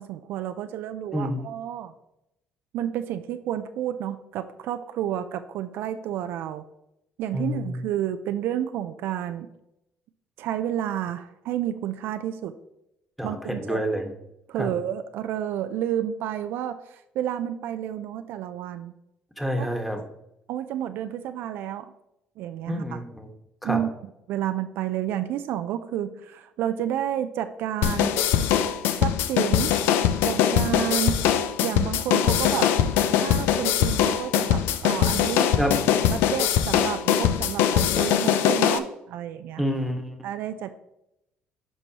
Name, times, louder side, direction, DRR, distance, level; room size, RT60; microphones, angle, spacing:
voice 1, 0.0-1.9 2.7-6.6 7.2-9.5 10.4-12.6 13.2-13.8 14.5-18.9 19.6-19.7 20.5-21.9 22.4-22.8 23.6-23.9 24.3-28.2 29.0-29.8 30.2-31.3 31.6-32.7 33.2-35.6 36.1-39.6 40.2-40.8, right 11 dB, 70° right, 10 dB, 0.4 m, -30 dB
voice 2, 1.1-1.5 7.3-7.8 13.2-14.1 14.6-14.7 19.4-20.0 22.7-23.3 23.6-23.8 35.6-35.8 39.6-40.2, equal, ahead, 3 dB, 1.4 m, -28 dB
sound 1, 27.8-38.8, left 9 dB, 80° left, 0.4 m, -22 dB
10.5 x 4.6 x 2.9 m, 0.85 s
supercardioid pair, 75°, 4 cm